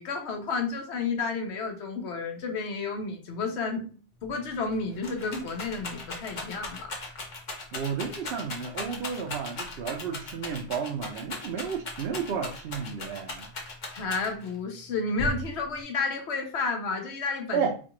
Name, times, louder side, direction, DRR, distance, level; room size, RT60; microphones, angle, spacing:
voice 1, 0.0-6.9 13.9-17.7, left 4 dB, 65° left, 4 dB, 1.0 m, -31 dB
Rattle, 4.2-4.3 4.6-14.6 15.2-15.8, left 2 dB, 45° left, 0.9 m, -37 dB
voice 2, 7.7-13.5 17.5-17.7, right 6 dB, 65° right, 0 dB, 0.8 m, -32 dB
4.2 x 2.3 x 2.9 m, 0.38 s
omnidirectional pair, 1.2 m